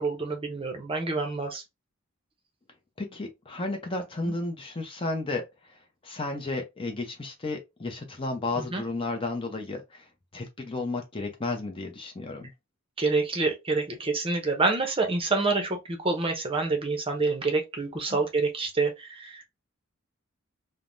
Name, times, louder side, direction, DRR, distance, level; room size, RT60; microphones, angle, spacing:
voice 1, 0.0-1.6 4.3-4.4 8.6-8.8 13.0-19.4, right 3 dB, 25° right, 0.6 m, -27 dB
voice 2, 3.0-5.5 6.0-10.0 10.3-12.5 18.1-18.2, left 2 dB, 25° left, 0.6 m, -33 dB
3.3 x 2.0 x 2.5 m
head